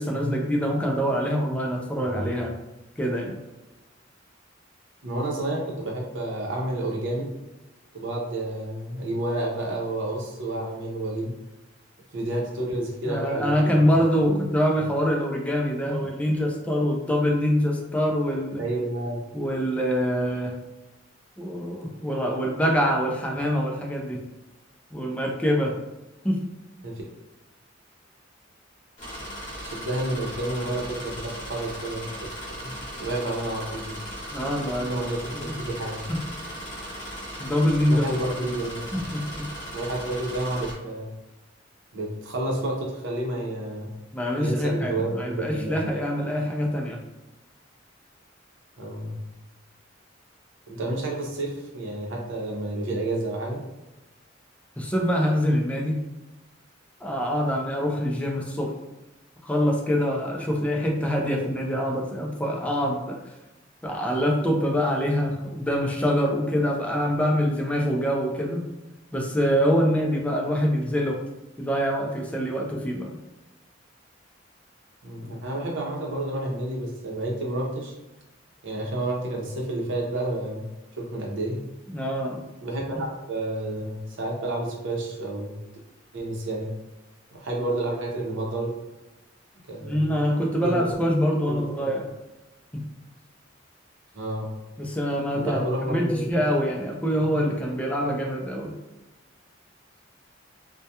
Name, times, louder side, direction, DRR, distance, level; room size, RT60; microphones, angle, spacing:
voice 1, 0.0-2.5 3.0-3.4 13.1-18.6 19.3-20.6 21.4-24.2 24.9-25.8 26.2-26.4 34.3-35.0 35.4-35.6 36.1-36.2 37.4-38.1 38.9-39.5 44.1-47.0 54.8-56.0 57.0-58.7 59.4-63.2 63.8-68.6 69.1-71.2 71.6-73.2 81.9-82.4 89.9-92.1 92.7-92.9 94.8-95.6 95.9-98.7, equal, 5° left, -1 dB, 0.4 m, -25 dB
voice 2, 5.0-7.3 7.9-11.3 12.1-13.9 14.3-14.4 18.6-19.2 26.8-27.0 29.6-32.1 32.6-32.7 33.0-33.9 34.9-36.0 37.9-39.0 39.7-41.1 41.9-43.9 44.4-45.8 48.8-49.2 50.7-53.6 75.0-77.9 78.6-81.6 82.6-85.5 86.1-86.7 87.4-88.7 89.7-90.2 90.6-90.8 91.4-91.9 94.1-94.5 95.3-96.3, right 1 dB, 75° right, -2 dB, 0.7 m, -30 dB
sound 1, 29.0-40.7, equal, 40° left, 1.1 m, -37 dB
2.3 x 2.1 x 2.7 m, 1.0 s
head